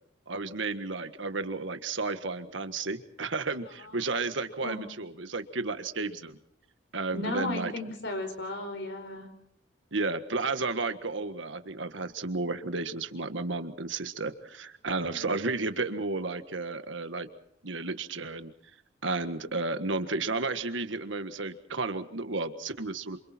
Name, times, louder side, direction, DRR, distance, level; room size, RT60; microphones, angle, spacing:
voice 1, 0.3-6.4 6.9-7.7 9.9-17.3 17.6-18.5 19.0-23.2, right 3 dB, 70° right, 9 dB, 1.6 m, -32 dB
voice 2, 3.8-4.1 4.6-4.8 7.1-9.3 15.0-15.4, left 2 dB, 60° left, 7 dB, 5.2 m, -35 dB
28.5 x 26.5 x 4.4 m, 0.68 s
head